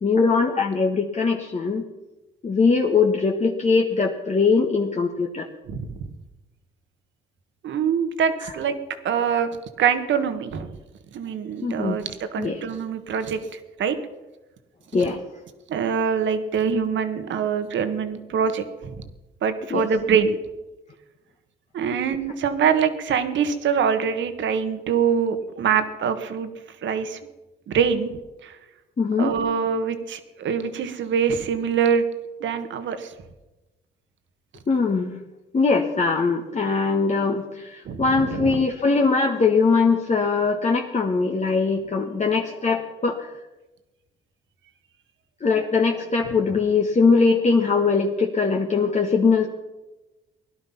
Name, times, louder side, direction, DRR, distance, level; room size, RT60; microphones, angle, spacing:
voice 1, 0.0-1.8 2.4-5.5 11.6-12.0 12.4-12.6 14.9-15.2 19.7-19.9 29.0-29.4 34.7-35.2 35.5-43.3 45.4-49.5, left 4 dB, 35° left, 1 dB, 1.4 m, -21 dB
voice 2, 5.7-6.0 7.6-8.8 9.0-9.5 9.8-10.7 11.1-14.0 15.7-19.0 19.4-20.4 21.7-26.5 26.8-27.2 27.7-28.6 29.2-32.0 32.4-33.1 37.8-38.6, right 7 dB, 70° right, 9 dB, 1.6 m, -24 dB
17.5 x 11.5 x 5.8 m, 1.1 s
cardioid pair, 90°, 20 cm